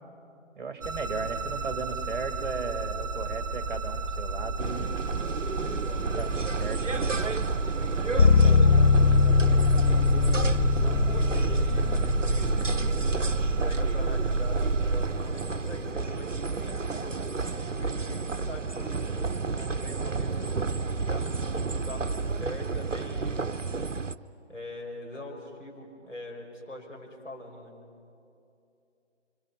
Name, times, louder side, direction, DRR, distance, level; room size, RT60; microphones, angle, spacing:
voice 1, 0.6-5.0 6.0-7.4, right 4 dB, 40° right, 6 dB, 2.2 m, -36 dB
sound 1, 0.8-15.1, right 3 dB, 15° right, 0.9 m, -30 dB
sound 2, 4.6-24.2, right 4 dB, 85° right, 0.8 m, -32 dB
voice 2, 7.9-19.0 19.5-23.6 24.5-27.8, left 1 dB, 90° left, -1 dB, 5.6 m, -43 dB
sound 3, 8.2-15.9, left 5 dB, 50° left, 1.2 m, -23 dB
29.5 x 25.0 x 5.7 m, 2.6 s
figure-of-eight pair, 150°, 37 cm